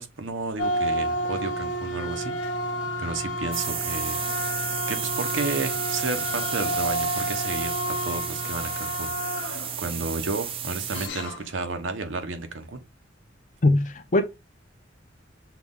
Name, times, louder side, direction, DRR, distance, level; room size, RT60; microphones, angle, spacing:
voice 1, 0.0-2.3 3.0-12.8, right 3 dB, 80° right, 0.8 m, -32 dB
sound 1, 0.6-11.6, equal, 70° left, 0.9 m, -31 dB
sound 2, 3.5-11.1, right 9 dB, 30° right, 0.4 m, -32 dB
voice 2, 13.6-14.2, left 2 dB, 40° left, 0.7 m, -20 dB
5.8 x 2.4 x 3.6 m
head